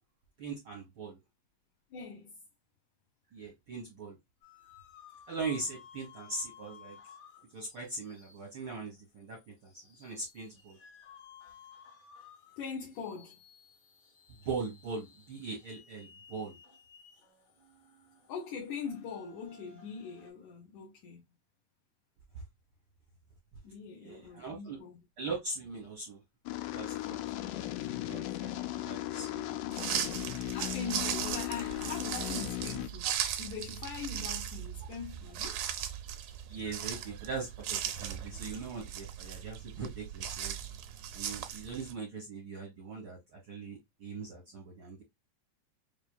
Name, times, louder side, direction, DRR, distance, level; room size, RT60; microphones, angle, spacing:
voice 1, 0.4-1.2 3.3-4.2 5.3-7.0 7.5-10.8 14.4-16.6 22.3-22.4 24.0-24.8 25.2-26.2 26.7-29.6 31.0-31.1 36.5-40.5 41.1-45.0, right 4 dB, 65° right, 1.2 m, -41 dB
voice 2, 1.9-2.3 12.6-13.4 18.3-21.2 23.6-25.0 30.5-33.1 33.4-35.6, left 6 dB, 70° left, 2.1 m, -42 dB
sound 1, 4.4-20.3, left 7 dB, 50° left, 3.0 m, -57 dB
sound 2, 26.5-32.9, left 15 dB, 85° left, 1.8 m, -37 dB
sound 3, 29.7-41.9, right 10 dB, 80° right, 1.7 m, -38 dB
6.0 x 2.8 x 2.2 m
omnidirectional pair, 4.1 m